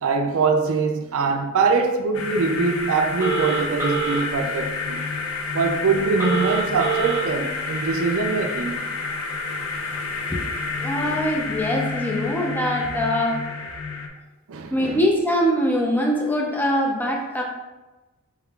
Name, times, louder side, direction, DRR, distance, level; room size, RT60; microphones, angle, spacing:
voice 1, 0.0-5.0 5.5-8.8 11.0-11.2 14.5-15.0, right 4 dB, 65° right, 0.4 m, -23 dB
sound 1, 2.1-14.1, left 4 dB, 70° left, 0.5 m, -29 dB
Telephone, 3.2-4.2 6.2-7.2, right 4 dB, 10° right, 1.1 m, -25 dB
voice 2, 10.8-13.4 14.7-17.4, equal, 10° left, 0.4 m, -23 dB
4.6 x 3.6 x 2.3 m
head